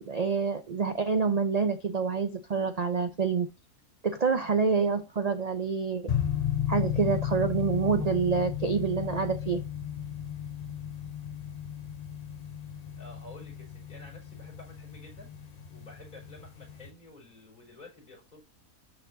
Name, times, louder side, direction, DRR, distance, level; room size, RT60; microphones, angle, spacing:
voice 1, 0.0-3.5 4.0-6.1 6.7-9.6, right 5 dB, 70° right, 7 dB, 0.3 m, -27 dB
sound 1, 6.1-16.9, left 10 dB, 55° left, 0.4 m, -34 dB
voice 2, 13.0-15.3 15.7-18.4, left 2 dB, 30° left, -4 dB, 5.1 m, -51 dB
12.0 x 4.2 x 2.7 m, 0.27 s
omnidirectional pair, 1.7 m